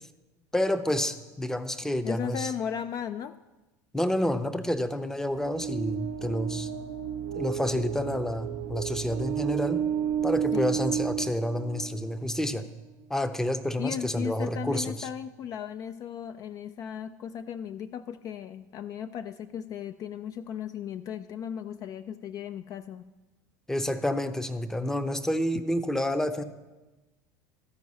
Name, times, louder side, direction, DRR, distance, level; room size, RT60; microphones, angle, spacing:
voice 1, 0.5-2.5 3.9-6.7 7.3-9.8 10.2-12.7 13.1-15.1 23.7-26.4, left 1 dB, 5° left, 10 dB, 0.6 m, -29 dB
voice 2, 2.0-3.4 10.5-10.8 13.8-23.1, left 8 dB, 40° left, 11 dB, 0.3 m, -36 dB
sound 1, 5.3-12.2, right 9 dB, 85° right, 0.7 m, -32 dB
13.5 x 4.6 x 5.5 m, 1.1 s
supercardioid pair, 95°, 9 cm